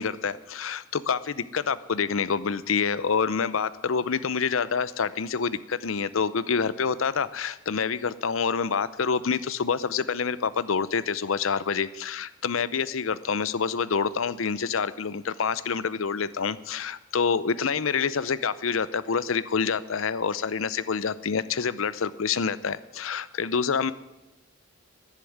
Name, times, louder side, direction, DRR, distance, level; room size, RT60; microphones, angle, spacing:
voice 1, 0.0-23.9, left 5 dB, 85° left, 16 dB, 0.6 m, -27 dB
11.5 x 11.0 x 9.4 m, 1.0 s
head